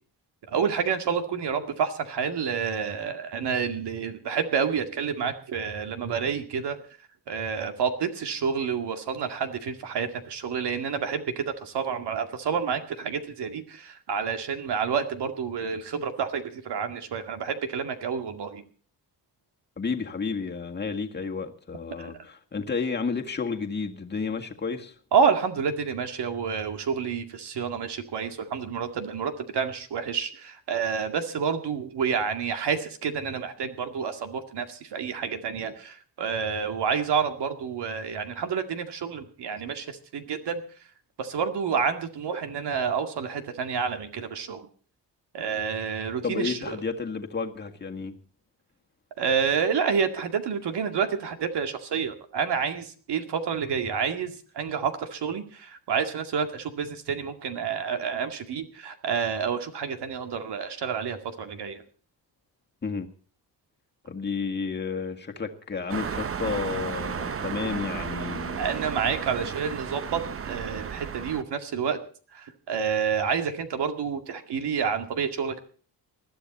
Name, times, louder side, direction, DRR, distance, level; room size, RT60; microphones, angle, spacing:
voice 1, 0.5-6.8 7.3-18.6 22.0-22.1 25.1-40.6 41.2-44.7 45.3-46.8 49.2-61.8 67.6-67.7 68.6-72.0 72.3-75.6, right 6 dB, 65° right, 2.2 m, -29 dB
voice 2, 19.8-24.9 46.2-48.2 62.8-63.1 64.0-68.6, left 5 dB, 25° left, 1.8 m, -31 dB
sound 1, 65.9-71.4, right 7 dB, 30° right, 0.7 m, -33 dB
20.5 x 13.0 x 4.2 m
cardioid pair, 145°, 43 cm